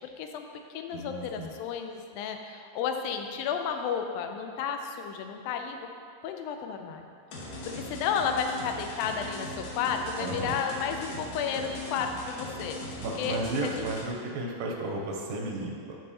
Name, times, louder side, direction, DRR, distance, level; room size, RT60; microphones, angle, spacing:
voice 1, 0.2-5.8 6.2-7.1 7.7-13.8, left 6 dB, 85° left, 5 dB, 2.4 m, -32 dB
voice 2, 0.9-1.6 10.2-10.6 13.0-16.0, right 2 dB, 80° right, 0 dB, 2.3 m, -34 dB
sound 1, 7.3-14.1, left 1 dB, 65° left, 2.4 m, -39 dB
11.0 x 5.3 x 2.8 m, 2.3 s
omnidirectional pair, 4.1 m